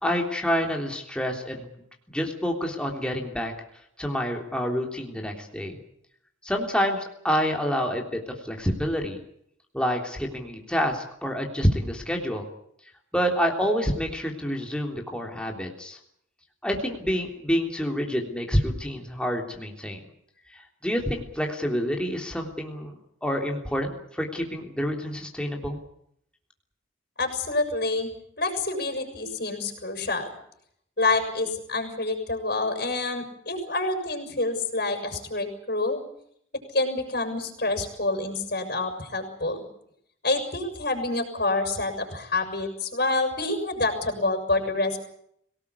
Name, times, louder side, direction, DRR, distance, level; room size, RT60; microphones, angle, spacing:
voice 1, 0.0-1.7 2.1-3.5 4.0-5.8 6.4-9.2 9.7-12.4 13.1-16.0 16.6-20.0 20.5-22.9 23.2-25.8, equal, 5° left, 1 dB, 3.4 m, -28 dB
voice 2, 27.2-28.1 28.4-30.3 31.0-36.0 36.7-39.6 40.2-45.0, left 2 dB, 50° left, 5 dB, 6.4 m, -27 dB
25.0 x 18.5 x 8.4 m, 0.72 s
head